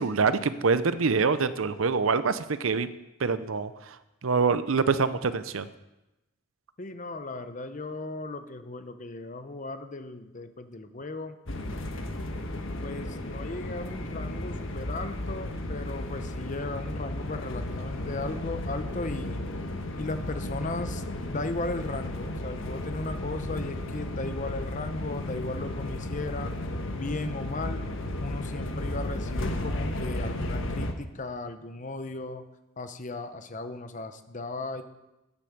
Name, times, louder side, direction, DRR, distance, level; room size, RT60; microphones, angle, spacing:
voice 1, 0.0-2.9 3.2-4.0 4.2-5.7, right 5 dB, 90° right, 13 dB, 0.7 m, -25 dB
voice 2, 6.8-11.4 12.8-19.4 19.9-26.5 26.9-27.8 28.2-32.4 32.8-34.8, left 2 dB, 40° left, 9 dB, 0.8 m, -36 dB
sound 1, 11.5-30.9, left 1 dB, 75° left, 1.3 m, -34 dB
9.8 x 8.6 x 7.2 m, 0.98 s
head